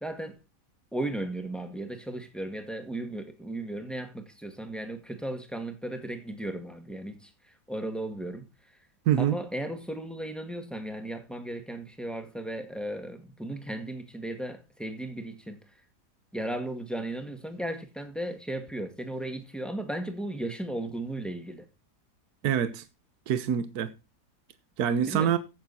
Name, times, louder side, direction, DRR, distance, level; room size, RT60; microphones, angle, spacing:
voice 1, 0.0-0.4 0.9-7.3 7.7-8.5 9.2-15.6 16.3-21.7 25.1-25.4, right 1 dB, ahead, 1.9 m, -35 dB
voice 2, 9.1-9.4 22.4-22.8 23.3-23.9 24.8-25.4, right 9 dB, 70° right, 1.5 m, -25 dB
15.5 x 7.1 x 4.2 m
omnidirectional pair, 1.7 m